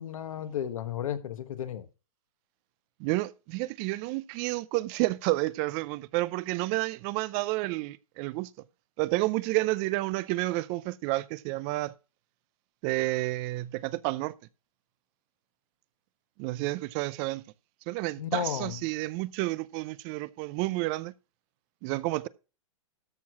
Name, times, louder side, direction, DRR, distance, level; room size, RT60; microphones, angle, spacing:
voice 1, 0.0-1.9 18.2-18.8, left 9 dB, 75° left, 1.4 m, -33 dB
voice 2, 3.0-8.5 9.0-11.9 12.8-14.3 16.4-17.4 17.9-21.1 21.8-22.3, right 20 dB, 35° right, 0.5 m, -30 dB
13.5 x 4.7 x 5.9 m
hypercardioid pair, 135°, 18 cm